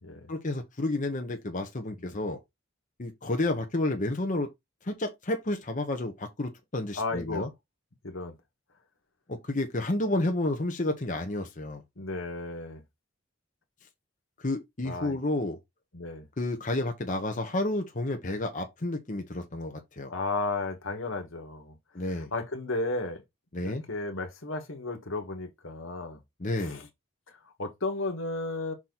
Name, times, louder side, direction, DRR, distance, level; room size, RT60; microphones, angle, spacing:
voice 1, 0.3-2.4 3.0-4.5 4.8-7.5 9.3-11.8 14.4-15.6 16.4-20.1 21.9-22.3 23.5-23.8 26.4-26.8, left 2 dB, 40° left, 1.0 m, -30 dB
voice 2, 6.9-7.5 8.0-8.3 12.0-12.8 14.8-15.2 15.9-16.3 20.1-23.2 23.6-26.2 26.6-26.9 27.4-28.7, left 2 dB, 80° left, 1.8 m, -34 dB
6.1 x 4.4 x 4.0 m
head